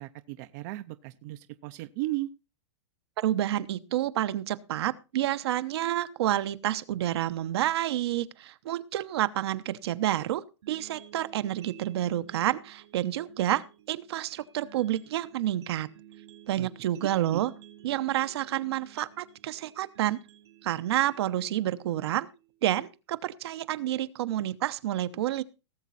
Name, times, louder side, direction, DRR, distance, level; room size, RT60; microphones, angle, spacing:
voice 1, 0.0-2.3 16.6-16.7 17.1-17.4, right 18 dB, 40° right, 10 dB, 0.6 m, -36 dB
voice 2, 3.2-15.9 16.5-17.5 17.8-20.2 20.6-22.3 22.6-25.4, right 13 dB, 65° right, 11 dB, 1.0 m, -29 dB
sound 1, 10.6-22.6, right 12 dB, 85° right, 3.3 m, -53 dB
18.0 x 7.4 x 4.1 m, 0.30 s
supercardioid pair, 160°, 15 cm